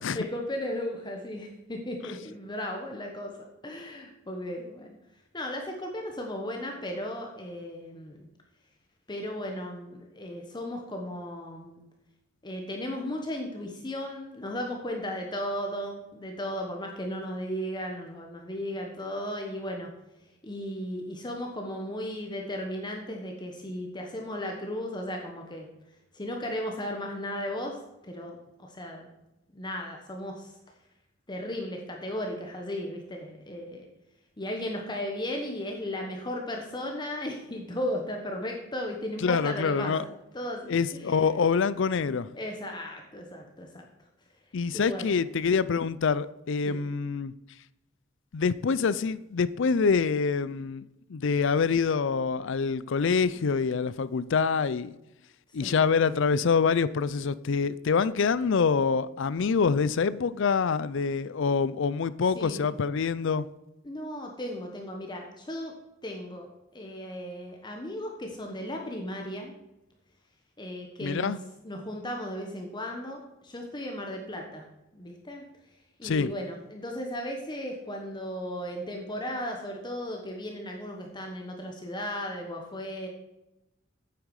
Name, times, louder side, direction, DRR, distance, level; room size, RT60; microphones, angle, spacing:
voice 1, 0.1-3.3 3.6-5.0 5.3-8.2 9.1-11.8 12.4-19.9 20.4-25.7 26.1-27.8 28.0-29.1 29.5-30.5 31.3-33.9 34.4-41.2 42.3-43.9 44.7-45.2 46.6-46.8 55.6-55.7 62.3-62.7 63.8-65.7 66.0-69.5 70.6-71.3 71.6-74.6 74.9-75.4 76.0-83.1, left 1 dB, 20° left, 1.1 m, -35 dB
voice 2, 39.2-40.1 40.7-42.3 44.5-47.3 48.3-54.9 55.5-63.5 71.0-71.4 76.0-76.3, left 5 dB, 65° left, 0.5 m, -26 dB
9.2 x 8.6 x 4.8 m
head